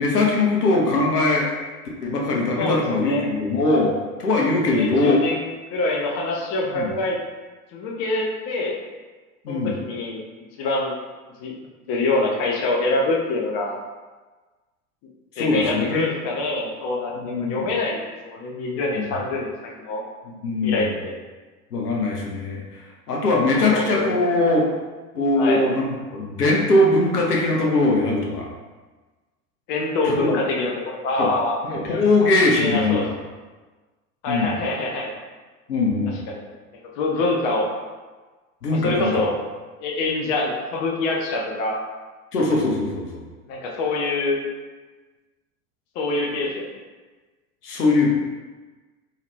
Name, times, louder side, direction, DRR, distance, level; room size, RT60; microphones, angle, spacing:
voice 1, 0.0-1.5 2.0-3.9 4.2-5.2 6.7-6.9 9.4-9.8 15.4-16.1 17.2-17.6 19.0-19.1 20.3-20.9 21.7-22.8 23.1-24.7 25.1-28.5 30.0-30.4 31.2-31.3 31.6-33.0 34.3-34.6 35.7-36.2 38.6-39.1 42.3-43.1 47.6-48.1, left 2 dB, 75° left, -2 dB, 0.7 m, -21 dB
voice 2, 2.6-3.2 4.6-5.4 5.7-7.2 7.7-8.8 9.5-10.2 10.6-11.0 11.4-11.5 11.9-13.8 15.4-20.0 20.6-21.1 23.6-24.2 25.4-25.7 29.7-31.6 32.5-33.2 34.2-35.1 36.3-36.5 37.0-37.7 38.8-39.4 39.8-41.8 43.5-44.4 45.9-46.7, left 2 dB, 35° left, -1 dB, 0.6 m, -25 dB
2.7 x 2.4 x 3.3 m, 1.3 s
figure-of-eight pair, 80°, 46 cm